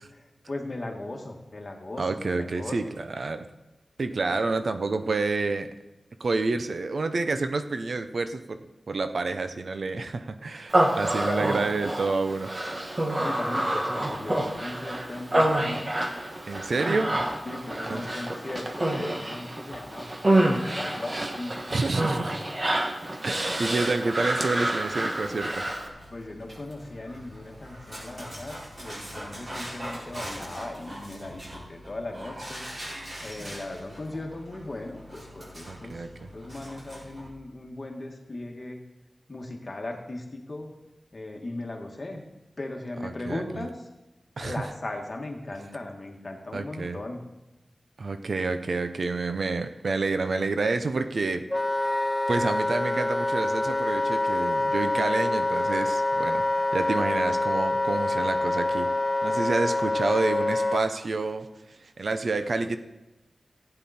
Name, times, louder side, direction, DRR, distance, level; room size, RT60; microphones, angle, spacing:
voice 1, 0.1-2.9 11.3-11.5 13.2-15.9 17.5-21.6 26.1-32.7 33.2-36.1 36.3-38.8 39.3-40.7 41.1-42.2 42.6-43.9 44.4-47.2, left 2 dB, 40° left, 2 dB, 1.8 m, -37 dB
voice 2, 2.0-2.8 3.1-3.4 4.0-5.7 6.2-8.6 8.9-12.6 16.5-17.2 17.9-18.0 21.7-22.3 23.2-25.6 35.7-36.1 43.0-43.6 44.4-44.5 46.5-47.0 48.0-51.5 52.3-58.9 59.2-61.5 62.0-62.8, right 3 dB, 70° right, 9 dB, 0.7 m, -28 dB
Human voice, 10.7-25.9, right 1 dB, 35° right, 1.3 m, -28 dB
Dog, 25.2-37.3, equal, 50° right, 4.7 m, -42 dB
Wind instrument woodwind instrument, 51.5-60.8, left 2 dB, 10° left, 0.7 m, -26 dB
15.0 x 9.2 x 4.3 m, 1.0 s
wide cardioid pair, 100°, 0 cm